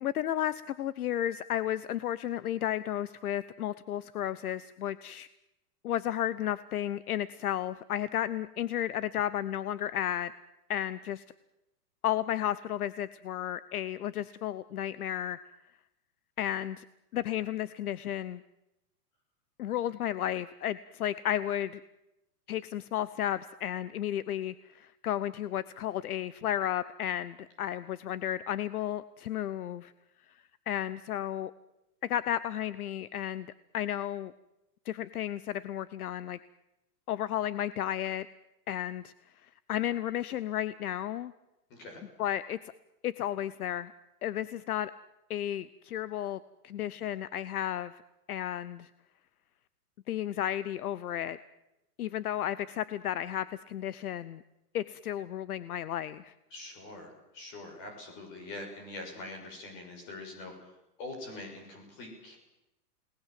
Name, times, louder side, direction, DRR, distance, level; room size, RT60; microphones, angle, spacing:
voice 1, 0.0-5.3 5.8-10.3 10.7-11.2 12.0-15.4 16.4-16.8 17.1-18.4 19.6-21.8 22.5-29.9 30.7-31.5 32.0-33.5 33.7-34.3 34.9-36.4 37.1-38.3 38.7-39.1 39.4-41.3 42.2-42.6 43.0-43.9 44.2-44.9 45.3-47.9 48.3-48.9 50.1-51.4 52.0-54.4 54.7-56.3, left 11 dB, 65° left, 16 dB, 0.9 m, -33 dB
voice 2, 41.7-42.0 56.5-62.4, left 2 dB, 25° left, 3 dB, 6.2 m, -44 dB
30.0 x 19.5 x 7.6 m, 0.92 s
supercardioid pair, 175°, 48 cm